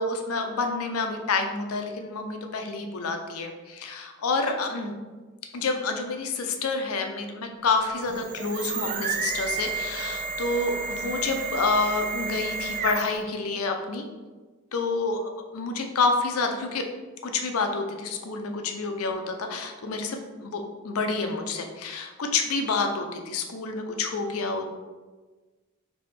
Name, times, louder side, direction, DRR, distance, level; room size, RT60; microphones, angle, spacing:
voice 1, 0.0-4.9 5.5-14.1 14.7-16.8 17.2-24.7, left 3 dB, 80° left, 5 dB, 0.5 m, -28 dB
sound 1, 8.0-13.3, right 5 dB, 35° right, 0.3 m, -31 dB
3.4 x 3.0 x 4.2 m, 1.3 s
head